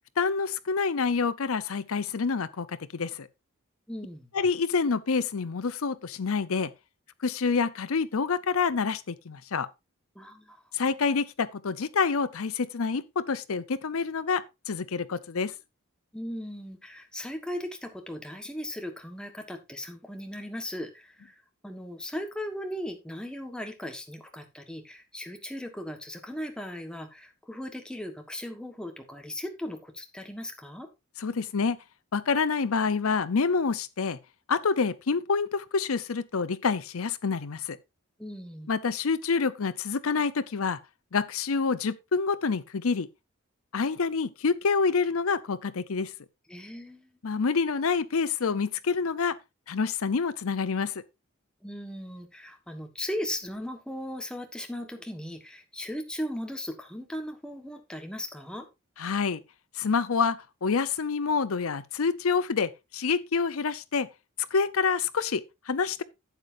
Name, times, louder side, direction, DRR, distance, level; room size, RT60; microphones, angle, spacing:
voice 1, 0.2-3.3 4.3-6.7 7.2-9.7 10.7-15.5 31.2-31.8 32.1-34.2 34.5-37.8 38.7-40.8 41.1-43.1 43.7-46.1 47.2-49.4 49.7-51.0 59.0-59.4 59.8-64.1 64.5-66.0, left 5 dB, 75° left, 0.6 m, -27 dB
voice 2, 3.9-4.3 10.1-10.6 16.1-21.3 21.6-30.9 38.2-38.7 46.5-47.1 51.6-58.7, left 1 dB, 5° left, 1.3 m, -37 dB
11.5 x 8.1 x 2.6 m
head